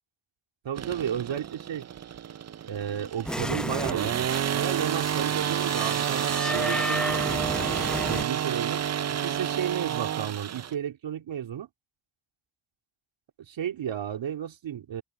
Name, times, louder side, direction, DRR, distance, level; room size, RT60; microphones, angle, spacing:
voice 1, 0.6-1.9 2.6-7.2 8.0-8.8 9.1-11.7 13.4-15.0, right 9 dB, 60° right, 3.0 m, -33 dB
sound 1, 0.7-10.7, right 9 dB, 35° right, 0.6 m, -30 dB
sound 2, 3.2-8.2, equal, ahead, 1.1 m, -33 dB
open air
cardioid pair, 85°, 50 cm